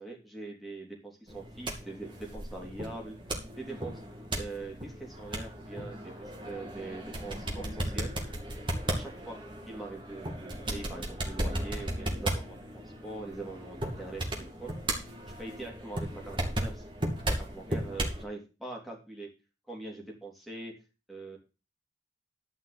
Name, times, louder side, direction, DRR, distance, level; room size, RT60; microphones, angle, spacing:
voice 1, 0.0-3.2 3.6-4.0 4.3-8.1 8.9-9.4 9.7-14.7 15.4-16.9 17.2-19.3 19.7-20.7 21.1-21.4, right 2 dB, ahead, -2 dB, 3.5 m, -42 dB
sound 1, 1.3-18.2, right 1 dB, 25° right, 2.5 m, -36 dB
12.0 x 5.8 x 6.1 m, 0.31 s
head